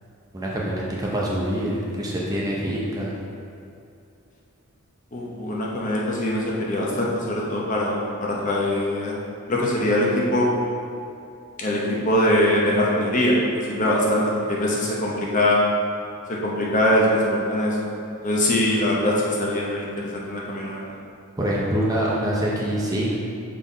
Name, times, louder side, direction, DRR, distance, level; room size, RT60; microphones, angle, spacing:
voice 1, 0.3-3.1 21.4-23.2, right 1 dB, 15° right, -4 dB, 0.6 m, -25 dB
voice 2, 5.1-9.2 9.5-10.5 11.6-15.6 16.3-17.9 18.2-20.8, left 1 dB, 35° left, -3 dB, 0.9 m, -22 dB
5.4 x 4.3 x 4.0 m, 2.5 s
head